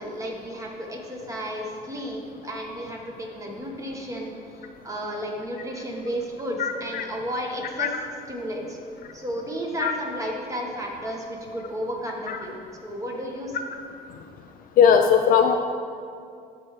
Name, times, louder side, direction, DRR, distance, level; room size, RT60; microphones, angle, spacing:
voice 1, 0.0-4.3 4.8-7.9 8.3-8.8 9.1-12.6 12.8-13.5, equal, 20° right, 0 dB, 1.2 m, -32 dB
voice 2, 6.6-7.1 7.8-7.9 9.8-9.9 12.3-12.4 14.8-15.6, left 7 dB, 60° left, 5 dB, 0.4 m, -19 dB
13.0 x 4.4 x 3.2 m, 2.4 s
cardioid pair, 110°, 17 cm